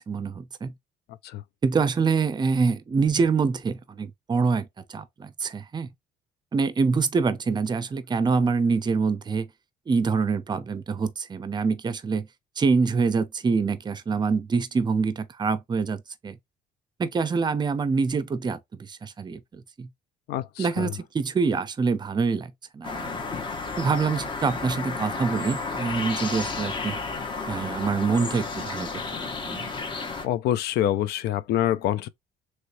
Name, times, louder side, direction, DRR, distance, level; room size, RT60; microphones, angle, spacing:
voice 1, 0.1-0.7 1.6-5.9 6.5-9.5 9.9-12.3 12.6-16.4 17.0-18.6 18.9-19.9 20.6-23.2 23.8-27.0 27.5-28.9 29.2-29.7, right 4 dB, 25° right, 0.5 m, -25 dB
voice 2, 20.3-20.9 30.2-32.1, left 11 dB, 75° left, 0.5 m, -26 dB
sound 1, 22.8-30.2, left 4 dB, 30° left, 0.9 m, -32 dB
3.1 x 3.1 x 2.5 m
cardioid pair, 110°, 17 cm